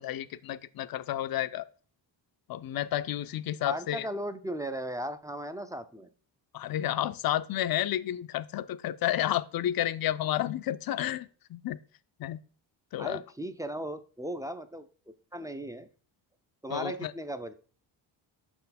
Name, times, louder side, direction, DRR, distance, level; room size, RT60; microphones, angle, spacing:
voice 1, 0.0-1.7 2.5-4.1 6.5-11.8 12.2-12.4 12.9-13.2 16.7-17.1, left 12 dB, 50° left, 0.5 m, -31 dB
voice 2, 3.6-6.1 13.0-14.8 15.3-15.9 16.6-17.5, right 1 dB, 10° right, 0.4 m, -36 dB
6.3 x 4.4 x 4.1 m
cardioid pair, 105°, 46 cm